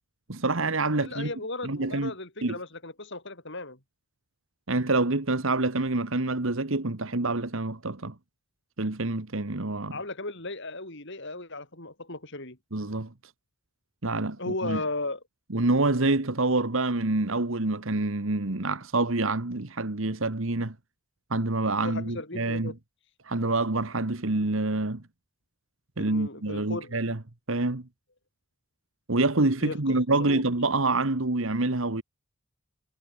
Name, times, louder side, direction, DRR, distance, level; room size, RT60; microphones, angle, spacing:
voice 1, 0.3-1.3 1.6-2.1 2.4-2.6 4.7-8.1 8.8-10.0 12.7-13.1 14.0-14.8 15.5-20.7 21.3-22.7 23.2-25.0 26.0-27.2 27.5-27.9 29.1-32.0, right 2 dB, 65° right, 1.6 m, -27 dB
voice 2, 0.9-3.8 9.9-12.6 14.4-15.2 21.8-22.7 26.0-27.0 29.6-30.4, left 2 dB, 55° left, 7.5 m, -36 dB
head